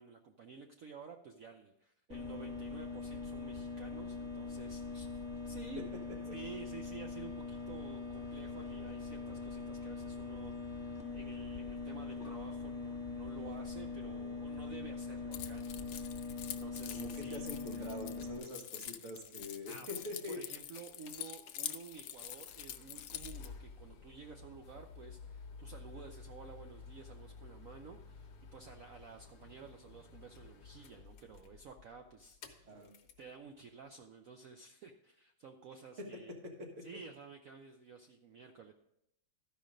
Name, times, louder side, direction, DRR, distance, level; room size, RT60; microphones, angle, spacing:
voice 1, 0.0-5.9 6.3-17.4 17.7-17.9 19.7-19.9 20.3-32.8 33.2-36.3 36.8-38.7, right 5 dB, 75° right, 4 dB, 0.7 m, -52 dB
sound 1, 2.1-18.4, left 4 dB, 10° left, 1.7 m, -42 dB
Keys jangling, 15.3-23.5, left 11 dB, 75° left, 1.3 m, -46 dB
voice 2, 16.9-20.4 32.6-32.9 36.0-36.1 36.4-36.8, left 1 dB, 40° right, 2 dB, 1.7 m, -44 dB
sound 2, 20.5-33.3 34.0-34.1, left 4 dB, 55° left, 1.3 m, -53 dB
13.0 x 5.2 x 5.0 m, 0.78 s
omnidirectional pair, 2.2 m